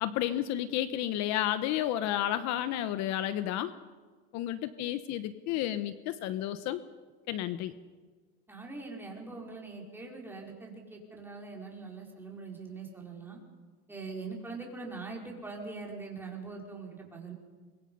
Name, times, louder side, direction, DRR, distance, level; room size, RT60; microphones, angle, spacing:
voice 1, 0.0-3.7 4.3-6.8 7.3-7.7, left 12 dB, 55° left, 12 dB, 1.0 m, -31 dB
voice 2, 8.5-13.4 13.9-17.3, right 4 dB, 5° right, -1 dB, 4.7 m, -42 dB
25.5 x 23.0 x 5.5 m, 1.4 s
supercardioid pair, 140°, 33 cm